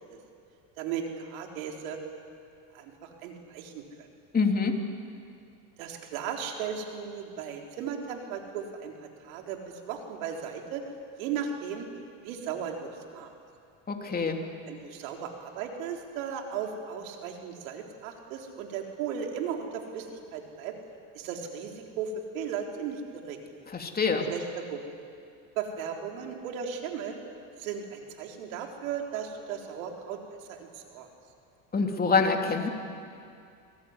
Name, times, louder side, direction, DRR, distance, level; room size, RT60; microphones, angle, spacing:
voice 1, 0.8-2.0 2.7-4.1 5.8-10.8 11.2-11.9 12.2-13.3 14.7-20.8 21.1-23.4 24.3-24.8 25.6-27.2 27.6-30.2 30.5-31.1, right 7 dB, 85° right, 2 dB, 4.0 m, -36 dB
voice 2, 4.3-4.8 13.9-14.4 23.7-24.3 31.7-32.7, left 4 dB, 20° left, 3 dB, 3.0 m, -25 dB
26.0 x 20.0 x 9.7 m, 2.4 s
supercardioid pair, 110°, 40 cm